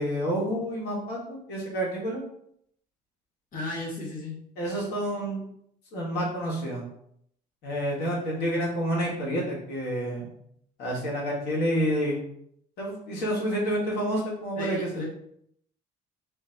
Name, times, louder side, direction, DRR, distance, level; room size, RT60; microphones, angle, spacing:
voice 1, 0.0-2.2 4.6-5.4 5.9-6.8 7.6-10.3 10.8-12.2 12.8-15.0, equal, 75° left, -3 dB, 1.6 m, -29 dB
voice 2, 3.5-4.3 14.6-15.0, left 2 dB, 55° left, -3 dB, 1.5 m, -34 dB
4.2 x 2.7 x 4.5 m, 0.71 s
cardioid pair, 110°, 17 cm